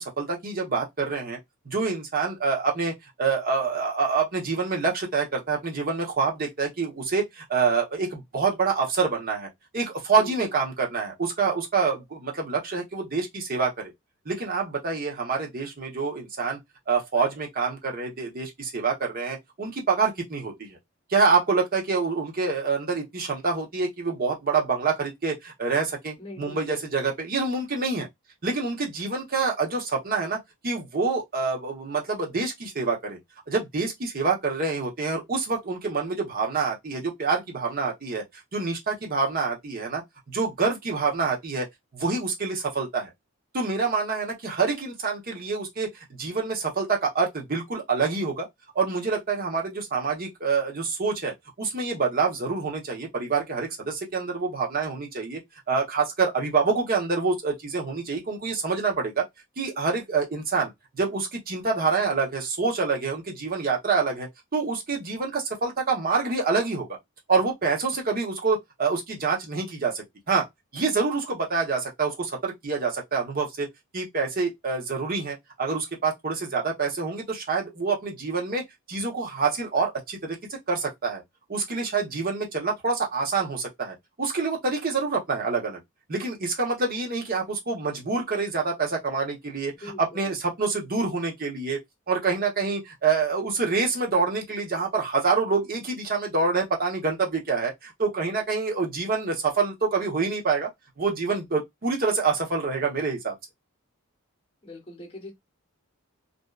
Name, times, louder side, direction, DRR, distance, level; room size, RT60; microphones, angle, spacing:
voice 1, 0.0-1.4 1.7-9.5 9.7-13.9 14.3-16.6 16.9-20.8 21.1-28.1 28.4-30.4 30.6-33.2 33.5-38.2 38.5-40.0 40.3-41.7 41.9-43.1 43.5-45.9 46.2-48.5 48.7-55.4 55.7-59.2 59.6-60.7 60.9-66.9 67.3-70.4 70.7-73.7 73.9-78.6 78.9-81.2 81.5-85.8 86.1-89.7 90.0-91.8 92.1-100.7 101.0-103.3, right 4 dB, 40° right, 0.8 m, -26 dB
voice 2, 10.2-10.5 26.2-27.0 89.8-90.3 104.6-105.3, left 1 dB, 25° left, 1.0 m, -41 dB
2.6 x 2.2 x 2.2 m
head